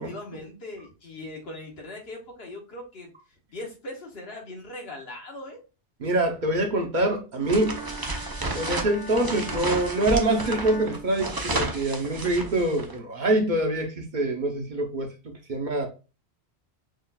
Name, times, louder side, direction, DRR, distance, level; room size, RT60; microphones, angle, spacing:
voice 1, 0.0-3.1 3.5-5.6, left 1 dB, 65° left, 1.4 m, -40 dB
voice 2, 6.0-7.8 8.5-15.9, right 1 dB, 45° right, 1.0 m, -25 dB
Bowed string instrument, 7.4-11.9, right 1 dB, 90° left, 1.7 m, -41 dB
sound 1, 7.5-12.9, right 2 dB, 25° right, 0.5 m, -32 dB
6.4 x 2.5 x 2.2 m
omnidirectional pair, 1.1 m